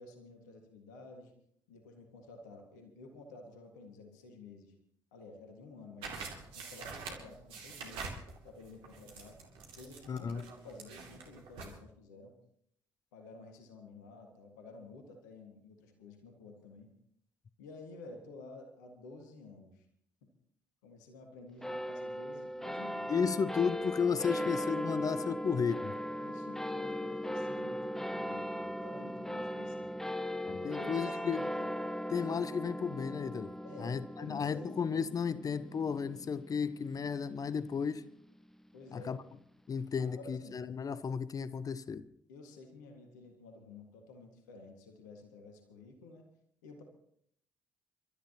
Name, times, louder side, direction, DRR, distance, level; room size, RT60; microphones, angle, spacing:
voice 1, 0.0-1.3 1.7-4.8 5.1-6.3 6.6-8.1 8.4-9.4 9.8-12.4 13.1-16.9 17.6-19.9 20.8-23.3 26.2-29.9 30.6-31.7 32.2-32.4 33.6-34.7 38.7-39.1 40.0-40.6 42.3-46.3 46.6-46.8, left 3 dB, 75° left, 1.9 m, -52 dB
sound 1, 6.0-11.8, right 4 dB, 65° right, 2.6 m, -46 dB
voice 2, 10.1-10.5 23.1-25.9 30.5-31.5 32.1-33.5 33.8-38.1 38.9-39.2 39.7-42.0, left 6 dB, 40° left, 0.7 m, -33 dB
sound 2, 21.6-38.3, equal, 5° left, 0.9 m, -38 dB
29.5 x 13.0 x 2.9 m
figure-of-eight pair, 45°, 10 cm